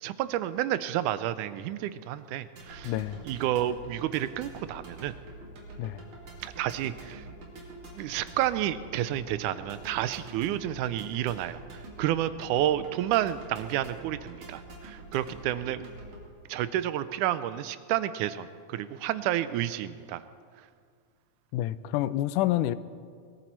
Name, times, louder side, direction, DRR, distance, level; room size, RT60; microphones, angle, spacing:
voice 1, 0.0-2.9 3.3-5.1 6.4-7.3 7.9-15.9 16.5-20.2, right 12 dB, 80° right, 14 dB, 2.1 m, -30 dB
sound 1, 2.6-16.3, right 2 dB, 55° right, 3.8 m, -46 dB
voice 2, 2.8-3.3 5.8-6.0 21.5-22.8, left 14 dB, 85° left, 16 dB, 2.1 m, -28 dB
22.5 x 14.0 x 4.6 m, 2.1 s
omnidirectional pair, 3.6 m